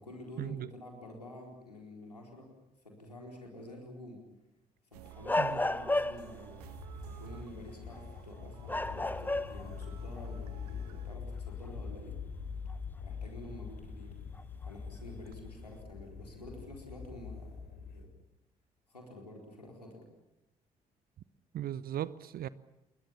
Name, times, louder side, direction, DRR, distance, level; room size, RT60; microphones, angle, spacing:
voice 1, 0.0-2.5 2.8-4.2 5.0-6.6 7.2-12.2 13.0-14.2 14.7-18.1 18.9-20.1, left 1 dB, 85° left, 4.3 m, -49 dB
sound 1, 4.9-11.2, right 12 dB, 75° right, 1.3 m, -52 dB
sound 2, 5.2-6.4 7.9-8.2 8.7-9.8 10.2-10.3 12.7-12.8 14.4-14.7, left 2 dB, 10° left, 0.8 m, -32 dB
sound 3, 6.6-18.0, left 6 dB, 55° left, 4.1 m, -44 dB
voice 2, 21.5-22.5, right 11 dB, 50° right, 0.8 m, -37 dB
28.5 x 22.0 x 7.2 m
figure-of-eight pair, 45°, 20 cm